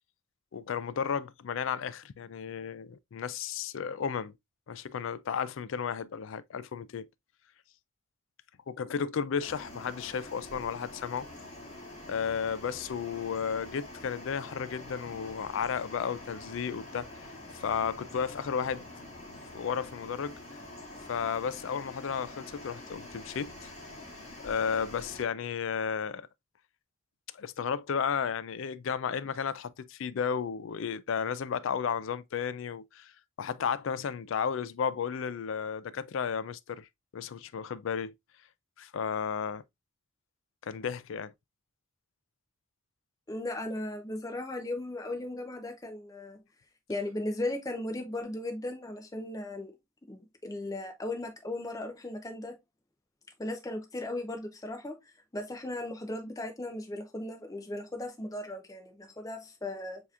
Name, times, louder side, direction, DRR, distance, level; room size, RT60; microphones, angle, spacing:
voice 1, 0.5-4.3 4.7-7.1 8.7-11.3 12.1-17.1 17.5-18.8 19.2-20.3 21.1-23.7 24.4-26.3 27.4-33.1 33.4-36.9 37.1-38.1 38.8-39.6 40.6-41.3, left 7 dB, 65° left, 0.4 m, -33 dB
sound 1, 9.4-25.2, left 1 dB, 35° left, 1.6 m, -46 dB
voice 2, 43.3-46.4 46.9-49.7 50.1-52.6 53.4-55.0 55.3-60.0, left 1 dB, 15° left, 0.6 m, -37 dB
7.0 x 2.9 x 2.3 m
head